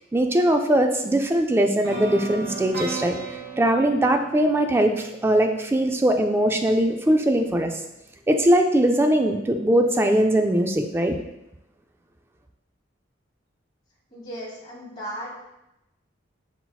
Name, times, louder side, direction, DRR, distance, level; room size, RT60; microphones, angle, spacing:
voice 1, 0.1-3.2 3.6-7.8 8.3-11.2, right 1 dB, 10° right, 4 dB, 0.3 m, -21 dB
sound 1, 1.8-5.8, right 3 dB, 60° right, 1.3 m, -36 dB
voice 2, 14.1-15.3, right 1 dB, 25° left, -7 dB, 1.5 m, -36 dB
5.5 x 4.0 x 2.3 m, 0.90 s
head